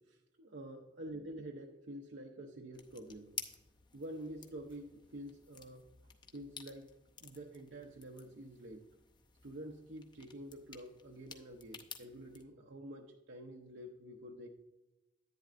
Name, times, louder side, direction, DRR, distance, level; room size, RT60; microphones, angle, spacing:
voice 1, 0.1-3.3 3.9-6.9 7.2-8.8 9.4-14.5, right 1 dB, 70° right, 1 dB, 0.7 m, -48 dB
sound 1, 2.7-12.4, left 6 dB, 25° left, 0.6 m, -53 dB
10.5 x 9.1 x 2.5 m, 1.0 s
head